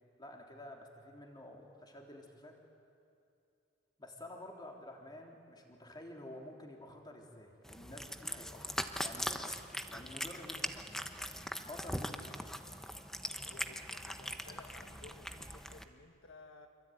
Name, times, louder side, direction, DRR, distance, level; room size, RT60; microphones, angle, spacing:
voice 1, 0.2-2.6 4.0-11.0 11.6-12.4, left 1 dB, 20° left, 1 dB, 3.4 m, -50 dB
Cat, 7.6-15.8, equal, 5° left, 1.0 m, -41 dB
voice 2, 13.3-16.7, left 3 dB, 75° left, 5 dB, 1.6 m, -56 dB
27.0 x 23.5 x 9.3 m, 2.6 s
head